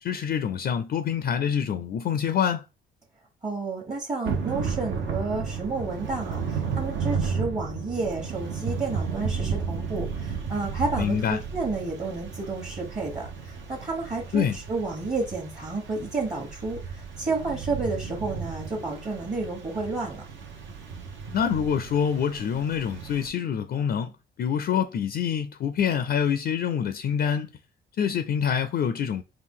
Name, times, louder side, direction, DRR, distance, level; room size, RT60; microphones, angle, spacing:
voice 1, 0.0-2.6 11.0-11.4 14.3-14.6 21.3-24.1 24.4-27.5 28.0-29.2, left 8 dB, 55° left, 0.4 m, -26 dB
voice 2, 3.4-20.2, right 3 dB, 35° right, 1.2 m, -31 dB
Thunder / Rain, 4.2-23.3, right 6 dB, 70° right, 0.9 m, -33 dB
4.5 x 2.3 x 3.6 m
cardioid pair, 90°, 20 cm